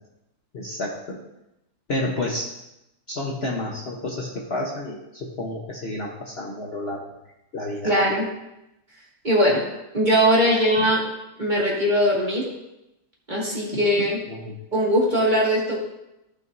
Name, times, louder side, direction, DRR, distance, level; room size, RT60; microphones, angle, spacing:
voice 1, 0.5-1.2 1.9-2.4 3.1-7.1 7.5-7.9 10.5-10.6 13.7-13.8 14.3-14.5, left 2 dB, 45° left, -2 dB, 1.1 m, -30 dB
voice 2, 7.8-8.3 9.2-9.6 9.9-11.0 11.4-12.5 13.3-14.2 14.7-15.8, equal, 30° right, -4 dB, 2.1 m, -20 dB
15.0 x 6.2 x 2.6 m, 0.89 s
omnidirectional pair, 1.7 m